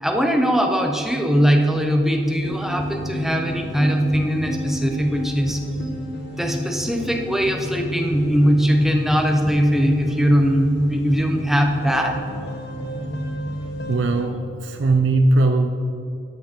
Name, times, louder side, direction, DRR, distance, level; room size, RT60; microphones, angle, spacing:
voice 1, 0.0-5.6 6.4-12.2, equal, ahead, 3 dB, 0.7 m, -20 dB
sound 1, 2.4-14.2, equal, 60° left, 1.0 m, -30 dB
voice 2, 13.9-15.7, right 2 dB, 75° right, 6 dB, 0.5 m, -19 dB
13.5 x 5.4 x 4.4 m, 2.7 s
head